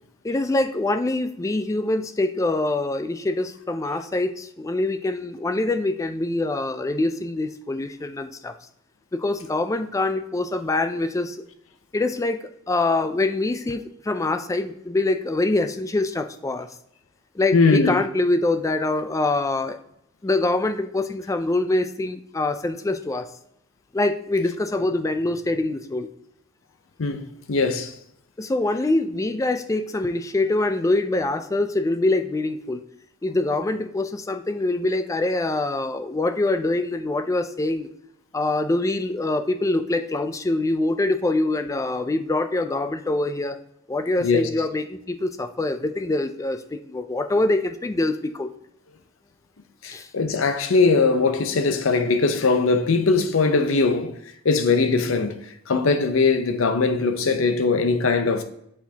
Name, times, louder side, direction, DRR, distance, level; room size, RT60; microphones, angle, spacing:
voice 1, 0.2-8.5 9.1-11.4 11.9-12.4 12.7-16.7 17.4-19.8 20.2-23.3 23.9-26.1 28.4-32.8 33.2-37.9 38.3-43.6 43.9-48.5 49.9-50.1, left 2 dB, 15° left, 0.3 m, -24 dB
voice 2, 17.5-18.0 27.0-27.9 44.2-44.5 49.8-54.2 54.4-58.4, left 4 dB, 70° left, 0.6 m, -21 dB
8.0 x 4.4 x 2.8 m
head